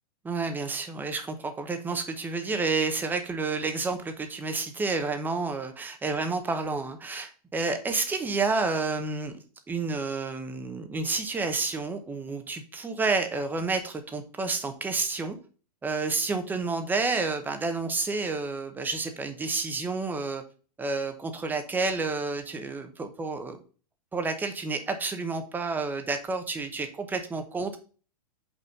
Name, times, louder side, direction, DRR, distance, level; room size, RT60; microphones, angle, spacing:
voice 1, 0.2-9.3 9.7-15.4 15.8-20.4 20.8-23.6 24.1-27.8, right 3 dB, 10° right, 7 dB, 0.8 m, -30 dB
5.5 x 4.1 x 5.2 m, 0.38 s
hypercardioid pair, 140°, 20 cm